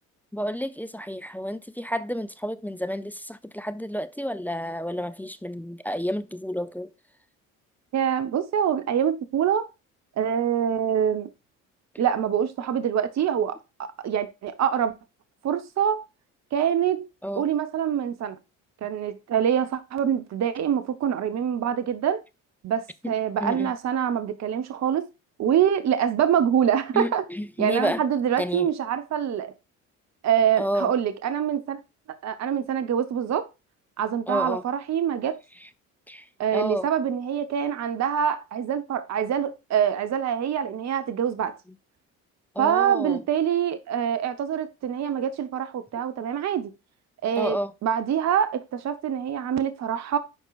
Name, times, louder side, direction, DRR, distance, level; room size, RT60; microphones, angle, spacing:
voice 1, 0.3-6.9 17.2-17.5 23.0-23.1 23.4-23.7 26.9-28.0 28.4-28.7 30.6-30.9 34.3-34.6 35.6-35.7 36.1-36.3 36.5-36.9 42.5-43.2 47.4-47.7, equal, 5° left, 0.5 m, -30 dB
voice 2, 7.9-9.7 10.2-11.3 12.0-13.6 14.0-14.9 15.4-16.0 16.5-17.1 17.4-18.4 18.8-22.2 22.6-25.1 25.4-27.2 27.6-29.5 30.2-31.8 32.2-33.5 34.0-35.4 36.4-41.6 42.6-46.7 47.2-47.6 47.8-50.2, right 9 dB, 45° right, 0.9 m, -25 dB
11.0 x 4.5 x 2.4 m
hypercardioid pair, 60°, 39 cm